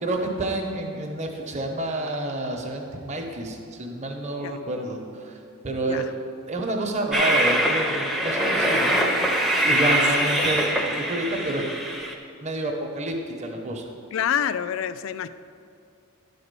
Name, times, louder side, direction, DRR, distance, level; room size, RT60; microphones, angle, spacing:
voice 1, 0.0-5.4 5.6-6.0 6.5-9.4 9.6-11.7 12.4-13.9, right 1 dB, 30° right, 2 dB, 0.9 m, -29 dB
Train, 7.1-12.1, right 1 dB, ahead, 0.7 m, -23 dB
voice 2, 14.1-15.3, left 9 dB, 60° left, 14 dB, 0.3 m, -27 dB
10.5 x 4.2 x 6.8 m, 2.4 s
head